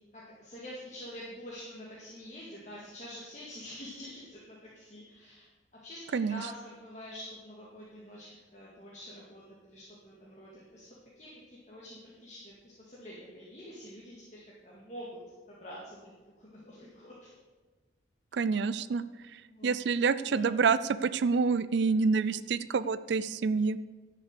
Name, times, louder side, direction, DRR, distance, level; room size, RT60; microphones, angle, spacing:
voice 1, 0.1-5.5 5.8-8.3 8.5-15.1 15.5-16.1 16.4-17.3 18.3-18.4 19.5-19.8 20.2-20.5, equal, 35° left, -6 dB, 2.0 m, -47 dB
voice 2, 18.3-19.0 19.6-23.8, right 5 dB, 65° right, 14 dB, 0.4 m, -27 dB
11.5 x 6.7 x 6.6 m, 1.3 s
head